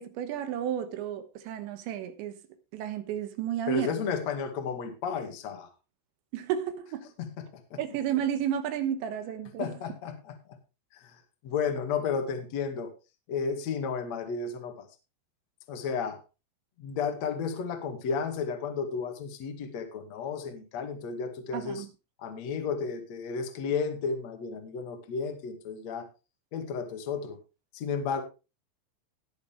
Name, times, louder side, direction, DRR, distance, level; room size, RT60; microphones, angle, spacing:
voice 1, 0.0-2.4 2.7-4.0 6.3-7.1 7.8-9.8 21.5-21.9, right 10 dB, 70° right, 3.1 m, -32 dB
voice 2, 3.7-5.7 7.2-7.8 9.6-10.4 11.0-11.1 11.4-12.9 13.3-14.9 15.7-16.2 16.8-21.9 22.2-26.1 26.5-27.4 27.7-28.2, left 6 dB, 50° left, 2.2 m, -33 dB
19.5 x 6.7 x 3.4 m
omnidirectional pair, 5.8 m